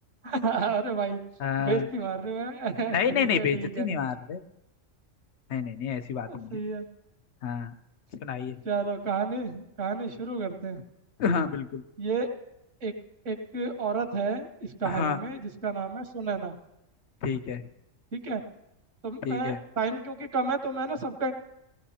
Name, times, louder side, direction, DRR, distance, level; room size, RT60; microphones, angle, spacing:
voice 1, 0.2-1.2 1.6-3.9 6.3-6.8 8.6-10.8 12.0-12.3 12.8-12.9 13.2-16.6 18.1-18.4 19.0-21.3, right 4 dB, 70° right, 7 dB, 1.5 m, -31 dB
voice 2, 1.4-1.9 2.9-4.4 5.5-6.6 7.4-7.7 8.2-8.6 11.2-11.8 14.8-15.2 17.2-17.6 19.2-19.6, left 6 dB, 65° left, 10 dB, 1.0 m, -29 dB
21.5 x 17.5 x 2.9 m, 0.87 s
omnidirectional pair, 1.3 m